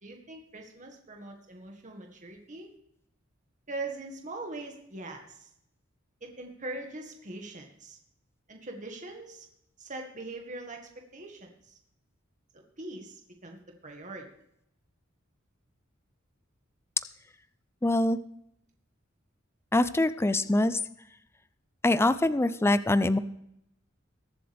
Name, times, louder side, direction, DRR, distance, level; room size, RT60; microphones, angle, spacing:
voice 1, 0.0-2.7 3.7-5.5 6.2-8.0 8.5-9.5 9.8-11.8 12.5-14.3, right 2 dB, 40° right, 2 dB, 1.8 m, -42 dB
voice 2, 17.8-18.2 19.7-20.8 21.8-23.2, left 2 dB, 10° left, 14 dB, 0.4 m, -24 dB
22.0 x 7.5 x 3.5 m, 0.76 s
head